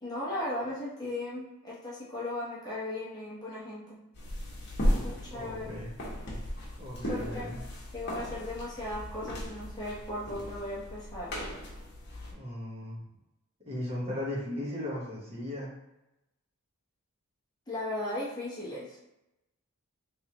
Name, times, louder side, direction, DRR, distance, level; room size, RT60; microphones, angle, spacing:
voice 1, 0.0-4.0 5.0-5.8 7.1-7.6 7.9-11.4 17.7-19.0, left 1 dB, 20° left, -8 dB, 0.9 m, -37 dB
sound 1, 4.1-12.3, equal, 50° left, 1.0 m, -35 dB
voice 2, 5.3-5.9 6.8-7.6 12.3-13.0 13.6-15.7, left 1 dB, 30° right, -7 dB, 1.2 m, -37 dB
3.4 x 3.1 x 2.9 m, 0.93 s
head